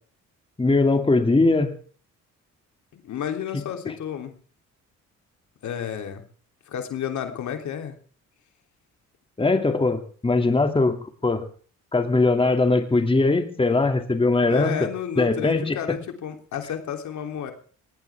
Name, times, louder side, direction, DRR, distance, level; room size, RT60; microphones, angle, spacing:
voice 1, 0.6-1.7 9.4-11.4 11.9-14.9 15.2-16.0, left 3 dB, 20° left, 6 dB, 2.5 m, -21 dB
voice 2, 2.9-4.4 5.6-6.2 6.7-8.0 14.5-17.5, left 8 dB, 70° left, 5 dB, 3.3 m, -31 dB
19.0 x 19.0 x 3.6 m, 0.43 s
cardioid pair, 90°, 30 cm